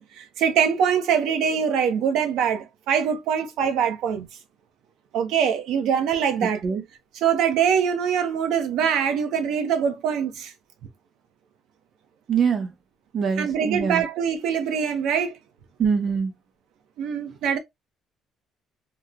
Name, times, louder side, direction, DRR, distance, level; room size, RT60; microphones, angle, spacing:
voice 1, 0.0-4.3 5.1-6.6 7.1-10.5 13.4-15.4 17.0-17.6, right 7 dB, 80° right, 0.7 m, -23 dB
voice 2, 6.4-6.8 12.3-12.7 13.1-14.0 15.8-16.3, right 6 dB, 40° right, 0.7 m, -24 dB
3.0 x 2.1 x 3.6 m
cardioid pair, 165°, 0 cm